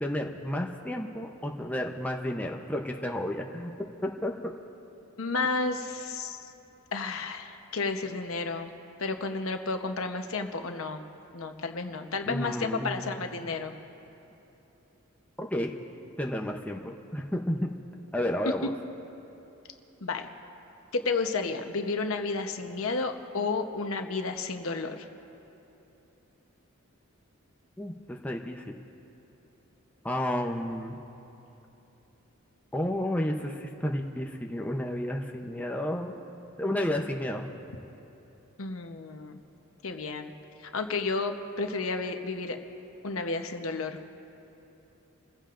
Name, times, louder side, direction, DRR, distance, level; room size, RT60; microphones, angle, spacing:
voice 1, 0.0-3.7 4.0-4.3 12.3-13.1 15.4-15.7 16.2-17.7 18.1-18.7 27.8-28.6 30.0-31.0 32.7-36.1 36.6-37.5, left 1 dB, 5° left, 1 dB, 0.7 m, -31 dB
voice 2, 5.2-6.4 6.9-8.7 9.0-11.0 11.3-13.7 20.0-20.3 20.9-25.1 38.6-39.4 39.8-40.3 40.7-42.6 43.0-44.0, left 3 dB, 85° left, 6 dB, 0.9 m, -32 dB
29.5 x 15.5 x 2.5 m, 3.0 s
head